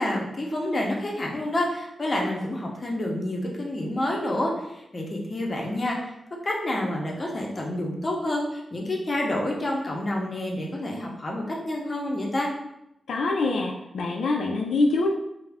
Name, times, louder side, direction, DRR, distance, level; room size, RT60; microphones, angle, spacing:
voice 1, 0.0-6.1 6.4-12.5, left 1 dB, 35° left, -1 dB, 0.5 m, -28 dB
voice 2, 13.1-15.1, left 3 dB, 80° left, 0 dB, 0.3 m, -24 dB
2.3 x 2.0 x 3.3 m, 0.83 s
wide cardioid pair, 115°, 0 cm